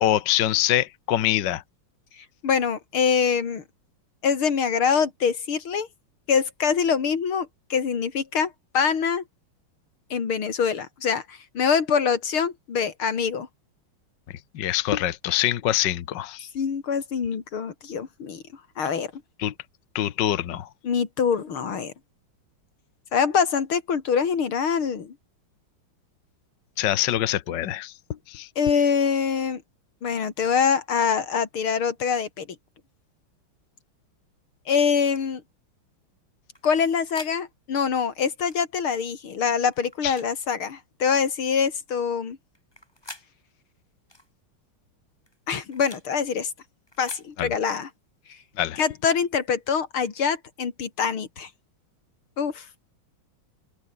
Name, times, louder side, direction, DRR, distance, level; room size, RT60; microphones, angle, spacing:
voice 1, 0.0-1.6 14.6-16.5 19.4-19.5 20.0-20.7 26.8-27.9 28.3-28.5 40.0-40.1 47.4-47.5 48.6-48.8, left 12 dB, 65° left, 1.7 m, -24 dB
voice 2, 2.2-3.6 4.2-5.9 6.3-9.2 10.1-13.5 16.5-18.4 18.8-19.1 20.8-21.9 23.1-25.1 28.6-29.6 30.0-32.5 34.7-35.4 36.6-42.4 45.5-46.5 47.0-47.9 48.8-51.5 52.4-52.6, left 6 dB, 85° left, 3.3 m, -24 dB
sound 1, 35.0-35.2 36.5-37.4 38.4-38.6 39.7-40.3 41.1-41.3 42.5-43.3 44.1-44.3 45.3-46.1 46.9-47.3, left 1 dB, 10° left, 4.4 m, -46 dB
omnidirectional pair, 2.3 m